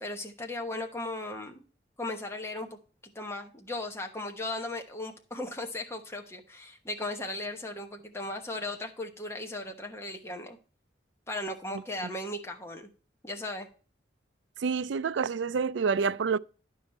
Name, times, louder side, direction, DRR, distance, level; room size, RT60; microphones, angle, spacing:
voice 1, 0.0-1.6 2.0-2.7 3.1-10.6 11.3-12.9 13.2-13.7, left 2 dB, 15° left, 1.1 m, -37 dB
voice 2, 14.6-16.4, right 5 dB, 75° right, 0.4 m, -28 dB
11.5 x 5.6 x 4.3 m
head